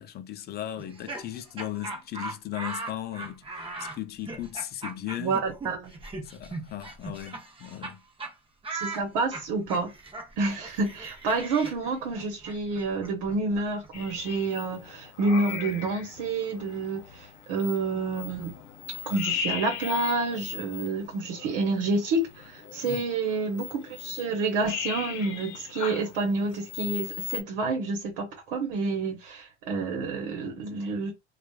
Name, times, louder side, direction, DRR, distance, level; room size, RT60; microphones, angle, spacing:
voice 1, 0.0-5.4 6.2-8.0 22.8-23.0, left 12 dB, 30° left, 0.4 m, -37 dB
Laughter, 0.8-7.9 8.2-8.3 8.6-14.4, right 3 dB, 15° right, 0.7 m, -39 dB
voice 2, 5.2-5.9 8.7-9.9 10.4-18.5 19.0-31.1, right 3 dB, 65° right, 1.1 m, -29 dB
sound 1, 13.9-27.4, left 9 dB, 50° left, 0.9 m, -38 dB
3.0 x 2.4 x 2.2 m
supercardioid pair, 105°, 37 cm